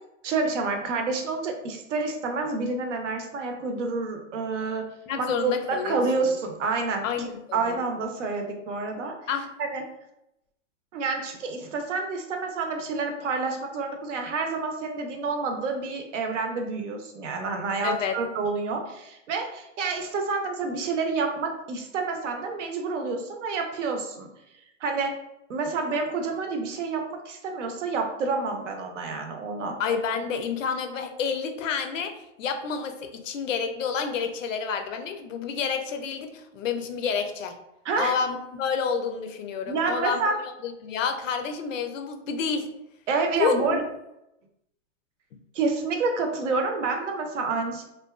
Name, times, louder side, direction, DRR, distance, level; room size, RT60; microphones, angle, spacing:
voice 1, 0.2-4.9 5.2-7.1 7.5-9.1 9.6-9.8 10.9-24.3 24.8-25.1 25.5-29.8 37.8-38.1 39.7-40.4 43.1-43.8 45.5-47.8, right 4 dB, 70° right, 4 dB, 0.7 m, -28 dB
voice 2, 5.1-6.0 7.0-7.8 9.3-9.5 17.8-18.2 29.8-37.6 38.0-40.4 40.6-42.7 43.4-43.8, left 6 dB, 80° left, 6 dB, 0.6 m, -29 dB
2.5 x 2.2 x 2.3 m, 0.85 s
hypercardioid pair, 145°, 38 cm